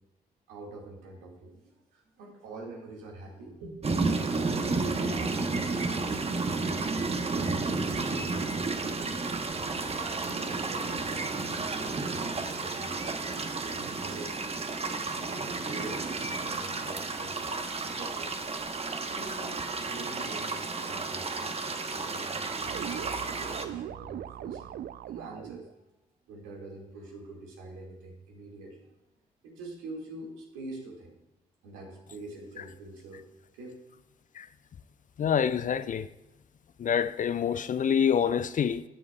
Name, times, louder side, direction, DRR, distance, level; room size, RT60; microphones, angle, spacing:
voice 1, 0.5-4.0 4.4-9.3 10.1-13.1 13.4-14.5 14.8-15.0 15.3-17.4 17.8-18.5 19.1-21.5 21.9-25.8 26.3-29.0 29.4-31.1 31.6-33.3 33.5-33.8, right 2 dB, 75° right, 2.0 m, -45 dB
sound 1, 3.8-23.6, right 3 dB, 30° right, 1.1 m, -32 dB
sound 2, 22.6-25.7, right 11 dB, 50° right, 0.4 m, -40 dB
voice 2, 35.2-36.1 36.8-38.8, left 7 dB, 40° left, 0.5 m, -26 dB
17.5 x 7.1 x 2.3 m
figure-of-eight pair, 40°, 20 cm